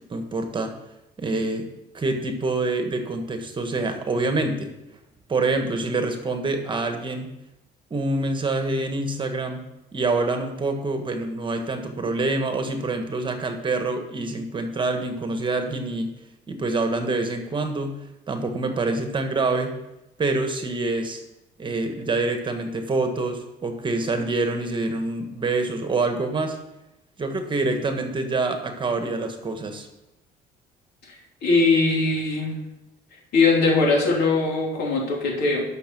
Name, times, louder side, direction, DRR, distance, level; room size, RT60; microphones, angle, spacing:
voice 1, 0.1-0.7 1.2-1.7 1.9-4.7 5.3-7.3 7.9-9.6 9.9-16.1 16.5-18.0 18.3-19.7 20.2-21.2 21.6-26.6 27.2-29.9, right 3 dB, 30° right, 5 dB, 1.5 m, -26 dB
voice 2, 31.4-32.6 33.3-35.6, left 3 dB, 70° left, -2 dB, 3.7 m, -20 dB
11.5 x 6.3 x 6.2 m, 0.93 s
cardioid pair, 110°, 17 cm